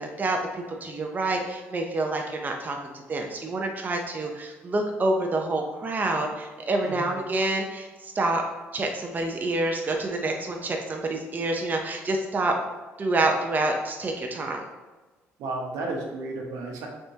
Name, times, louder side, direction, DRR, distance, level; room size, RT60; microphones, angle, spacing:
voice 1, 0.0-8.4 8.7-12.5 13.0-14.6, right 2 dB, 35° right, 2 dB, 0.7 m, -27 dB
voice 2, 15.4-16.9, right 2 dB, 80° right, 0 dB, 1.0 m, -33 dB
5.2 x 3.6 x 2.8 m, 1.2 s
supercardioid pair, 75°, 5 cm